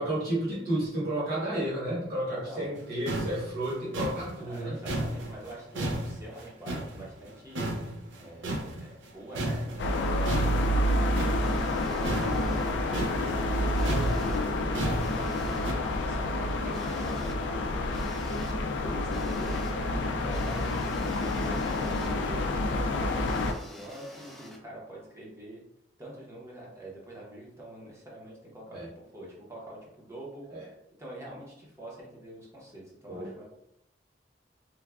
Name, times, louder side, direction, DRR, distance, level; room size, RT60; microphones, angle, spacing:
voice 1, 0.0-4.8 28.7-28.9 30.5-30.7 33.1-33.3, right 1 dB, 55° right, -9 dB, 1.2 m, -31 dB
voice 2, 2.2-2.7 4.4-7.7 8.1-13.8 14.3-18.4 18.8-22.4 22.8-25.6 26.0-28.9 29.1-30.5 31.0-33.4, right 1 dB, 15° right, -5 dB, 0.8 m, -45 dB
sound 1, 2.8-2.9 3.1-7.3 7.5-9.1 9.3-15.7, right 1 dB, 80° right, 0.5 m, -34 dB
sound 2, 9.8-23.5, left 1 dB, 80° left, 0.3 m, -28 dB
sound 3, 11.4-12.7 13.8-14.5 15.0-15.7 16.7-17.3 17.9-18.5 19.1-19.7 20.3-22.2 23.3-24.6, equal, ahead, 0.4 m, -48 dB
3.1 x 2.3 x 2.4 m, 0.80 s
head